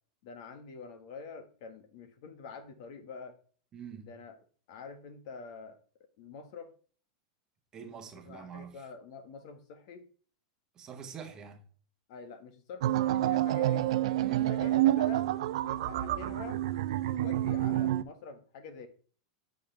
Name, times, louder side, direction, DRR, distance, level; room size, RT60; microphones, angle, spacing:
voice 1, 0.2-3.4 4.0-4.4 4.7-5.8 6.2-6.7 8.2-10.1 12.1-13.9 14.4-15.3 15.6-16.6 17.0-18.9, left 5 dB, 50° left, 1.6 m, -46 dB
voice 2, 3.7-4.1 7.7-8.8 10.8-11.6 14.2-14.5, right 7 dB, 20° right, 1.2 m, -45 dB
sound 1, 12.8-18.0, right 13 dB, 65° right, 0.6 m, -28 dB
8.6 x 6.5 x 3.4 m
supercardioid pair, 165°, 3 cm